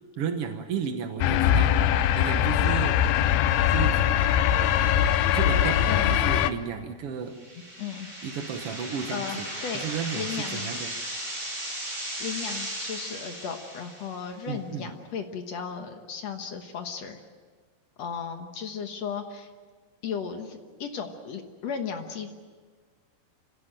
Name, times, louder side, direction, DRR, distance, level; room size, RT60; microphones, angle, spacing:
voice 1, 0.2-1.7 2.1-3.0 3.7-4.0 5.3-7.3 8.2-9.4 9.8-10.9 14.5-14.9, right 7 dB, 70° right, 6 dB, 1.4 m, -33 dB
sound 1, 1.2-6.5, left 10 dB, 85° left, 2.7 m, -22 dB
voice 2, 5.9-6.2 7.8-8.1 8.7-10.7 12.2-17.2 18.0-19.5 20.0-22.3, left 6 dB, 60° left, 6 dB, 1.9 m, -35 dB
sound 2, 7.3-14.3, right 1 dB, 20° right, 6.5 m, -36 dB
26.0 x 17.0 x 9.0 m, 1.5 s
omnidirectional pair, 4.3 m